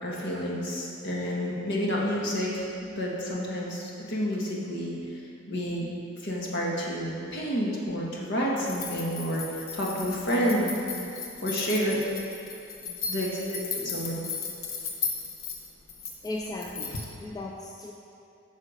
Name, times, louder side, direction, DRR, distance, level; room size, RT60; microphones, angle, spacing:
voice 1, 0.0-2.7 2.9-5.2 5.5-5.9 6.2-10.7 11.4-12.0 13.1-14.2, equal, 55° left, -3 dB, 1.7 m, -29 dB
sound 1, 8.7-17.1, left 5 dB, 85° left, 1.1 m, -36 dB
voice 2, 12.8-13.4 16.2-17.9, left 2 dB, 20° left, 0 dB, 0.4 m, -38 dB
9.5 x 6.5 x 5.1 m, 2.7 s
head